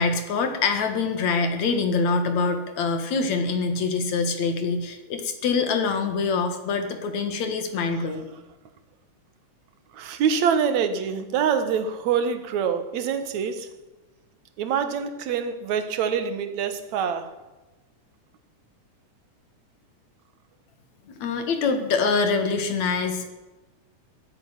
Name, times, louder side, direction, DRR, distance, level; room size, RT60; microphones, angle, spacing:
voice 1, 0.0-8.3 21.1-23.3, left 4 dB, 65° left, 7 dB, 2.8 m, -25 dB
voice 2, 9.9-13.7 14.6-17.3, right 7 dB, 65° right, 10 dB, 2.5 m, -25 dB
16.0 x 13.5 x 5.9 m, 1.1 s
omnidirectional pair, 3.7 m